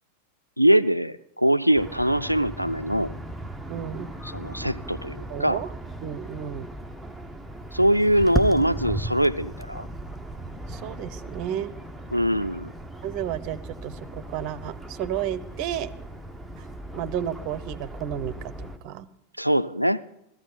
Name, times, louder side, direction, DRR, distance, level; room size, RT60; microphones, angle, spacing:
voice 1, 0.6-3.1 4.2-5.6 7.7-9.9 12.1-12.7 19.4-20.0, right 1 dB, 90° right, 14 dB, 0.4 m, -22 dB
sound 1, 1.8-18.8, right 1 dB, ahead, 0.9 m, -36 dB
voice 2, 3.7-4.1 5.3-5.7 6.0-6.7 10.7-11.7 13.0-15.9 16.6-16.7 16.9-19.1, right 10 dB, 40° right, 17 dB, 0.7 m, -32 dB
16.5 x 14.0 x 3.9 m, 0.80 s
figure-of-eight pair, 90°, 0 cm